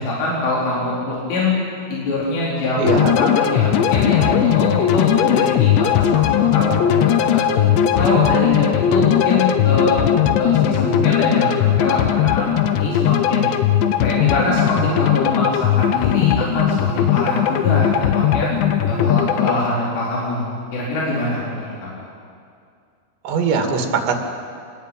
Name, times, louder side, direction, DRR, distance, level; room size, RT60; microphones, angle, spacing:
voice 1, 0.0-1.5 1.9-2.8 3.2-7.7 7.9-10.0 10.4-13.5 14.0-18.5 18.8-21.9, left 2 dB, 75° left, -5 dB, 6.6 m, -23 dB
sound 1, 2.8-19.6, left 10 dB, 90° left, 3.4 m, -18 dB
voice 2, 2.8-3.1 23.2-24.1, right 5 dB, 80° right, 3 dB, 4.8 m, -20 dB
26.5 x 20.5 x 9.2 m, 2.3 s
omnidirectional pair, 5.1 m